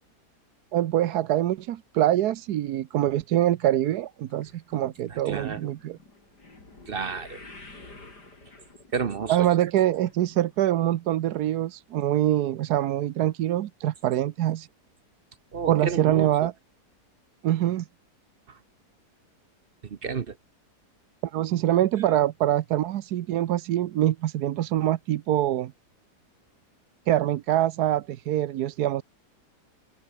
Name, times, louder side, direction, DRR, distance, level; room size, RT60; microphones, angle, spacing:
voice 1, 0.7-6.0 9.3-14.7 15.7-16.5 17.4-17.9 21.2-25.7 27.1-29.0, right 12 dB, 75° right, 1.3 m, -24 dB
sound 1, 4.3-10.7 11.0-11.4 12.0-12.1 12.4-12.5, left 2 dB, 80° left, 6.0 m, -50 dB
voice 2, 5.1-5.7 6.9-7.4 8.9-9.5 15.5-16.3 20.0-20.3, right 5 dB, 45° right, 0.9 m, -31 dB
omnidirectional pair, 1.7 m